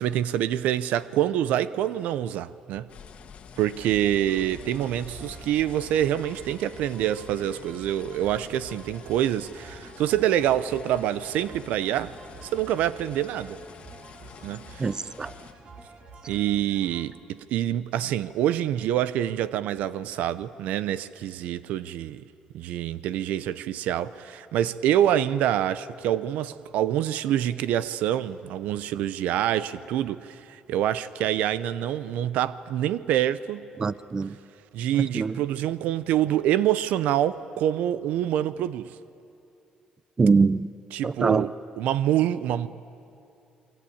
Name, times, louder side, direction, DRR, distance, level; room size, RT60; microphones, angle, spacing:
voice 1, 0.0-2.9 3.6-12.1 12.4-13.6 14.4-14.9 16.3-22.2 22.5-34.0 34.7-38.9 40.9-42.7, right 11 dB, 85° right, 0.7 m, -26 dB
sound 1, 2.9-15.5, left 7 dB, 55° left, 1.7 m, -47 dB
sound 2, 4.0-17.0, right 3 dB, 55° right, 3.9 m, -48 dB
voice 2, 14.8-15.3 33.8-34.4 35.0-35.4 40.2-40.7 41.0-41.5, right 4 dB, 30° right, 0.6 m, -23 dB
28.5 x 22.5 x 8.7 m
cardioid pair, 105°, 2 cm